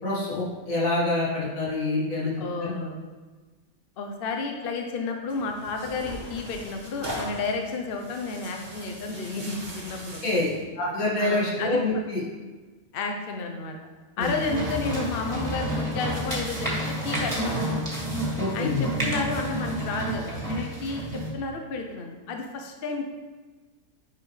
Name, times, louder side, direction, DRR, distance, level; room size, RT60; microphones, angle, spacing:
voice 1, 0.0-2.3 2.6-2.7 10.2-10.5 10.8-12.2 14.2-14.3 18.4-18.9, left 2 dB, 85° left, -6 dB, 2.5 m, -26 dB
voice 2, 2.4-3.0 4.0-10.5 11.2-11.8 12.9-13.8 14.2-18.0 18.5-23.1, left 3 dB, 50° left, 3 dB, 0.8 m, -32 dB
Tearing, 5.3-10.6, equal, 65° right, 2.2 m, -40 dB
sound 1, 14.2-21.3, right 1 dB, 20° right, 1.9 m, -30 dB
9.3 x 5.4 x 3.3 m, 1.3 s
omnidirectional pair, 1.4 m